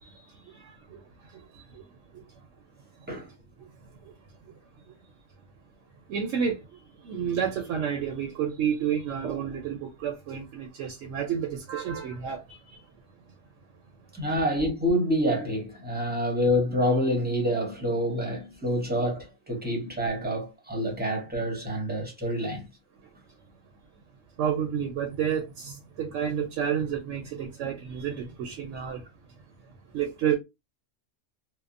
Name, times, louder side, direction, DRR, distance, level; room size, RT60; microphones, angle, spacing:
voice 1, 0.0-1.8 2.1-2.4 3.0-3.1 3.6-3.7 4.0-4.1 4.4-4.5 4.9-5.0 6.1-12.8 14.2-14.3 24.4-29.1 29.9-30.4, right 8 dB, 70° right, 0.9 m, -31 dB
voice 2, 14.1-22.7, equal, 10° right, 0.7 m, -27 dB
2.7 x 2.1 x 2.4 m
omnidirectional pair, 1.4 m